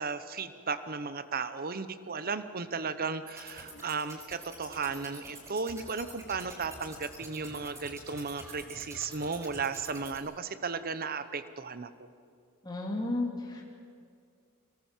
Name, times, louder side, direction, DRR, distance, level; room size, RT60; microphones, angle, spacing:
voice 1, 0.0-12.1, right 5 dB, 40° right, 13 dB, 0.9 m, -35 dB
sound 1, 3.3-10.2, right 1 dB, 15° right, 5.0 m, -47 dB
voice 2, 12.6-13.6, left 2 dB, 20° left, -2 dB, 2.6 m, -33 dB
25.0 x 18.5 x 7.4 m, 2.3 s
head